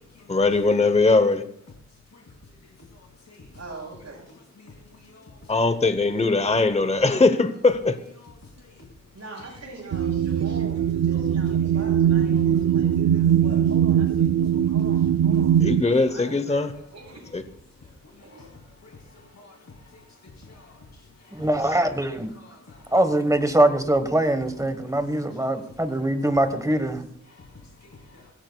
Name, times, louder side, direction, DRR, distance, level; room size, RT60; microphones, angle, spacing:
voice 1, 0.3-1.4 5.5-8.0 15.6-16.7 17.3-17.4, left 3 dB, 20° left, 0.8 m, -20 dB
voice 2, 2.8-3.6 4.3-5.8 6.3-6.5 6.8-7.2 8.2-9.5 10.2-10.7 11.1-11.9 12.2-13.6 14.2-21.5 22.3-23.0 24.8-25.6 25.9-26.3 27.3-28.3, left 3 dB, 60° left, 2.7 m, -50 dB
voice 3, 3.5-4.3 9.1-15.5 15.8-16.6 16.9-17.3 18.2-18.5, right 3 dB, 60° right, 6.7 m, -41 dB
sound 1, 9.9-15.8, right 9 dB, 90° right, 0.5 m, -21 dB
voice 4, 21.3-22.3 22.9-27.1, right 1 dB, 10° right, 1.2 m, -22 dB
24.0 x 16.5 x 2.3 m
wide cardioid pair, 115°, 30 cm